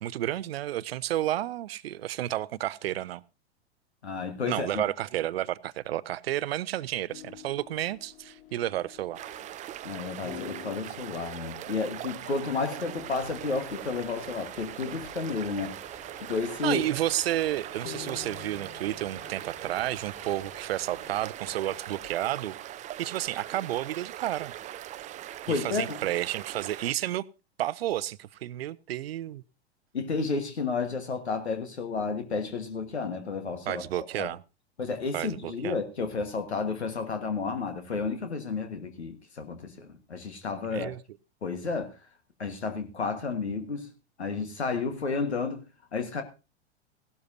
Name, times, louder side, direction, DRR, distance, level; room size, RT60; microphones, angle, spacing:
voice 1, 0.0-3.2 4.5-9.2 16.6-22.6 23.0-24.5 25.5-27.2 27.6-29.4 33.7-34.4 35.1-35.8 40.7-41.0, right 13 dB, 65° right, 0.6 m, -31 dB
voice 2, 4.0-4.8 9.8-15.7 16.2-16.8 25.5-26.0 29.9-33.8 34.2-34.3 34.8-40.9 41.4-41.9 42.4-43.9 44.2-46.2, left 4 dB, 80° left, 1.5 m, -31 dB
sound 1, 7.1-22.4, left 7 dB, 50° left, 1.5 m, -50 dB
sound 2, 9.1-26.9, right 13 dB, 25° right, 0.5 m, -41 dB
sound 3, 12.9-21.3, left 2 dB, 15° left, 4.7 m, -52 dB
16.5 x 12.5 x 2.7 m
figure-of-eight pair, 95°, 32 cm